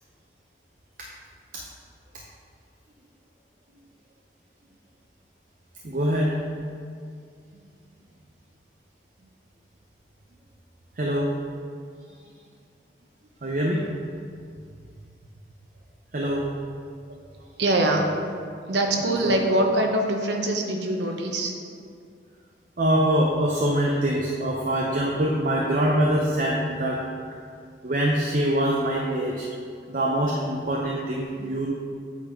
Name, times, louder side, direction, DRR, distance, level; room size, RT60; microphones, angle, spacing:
voice 1, 5.8-6.3 11.0-11.3 13.4-13.8 16.1-16.5 19.2-19.3 22.8-27.0 27.8-29.5 29.9-31.7, right 1 dB, 45° right, -2 dB, 0.6 m, -24 dB
voice 2, 17.6-18.1 18.7-21.5, right 1 dB, 80° right, 2 dB, 0.9 m, -23 dB
8.3 x 4.2 x 4.9 m, 2.3 s
head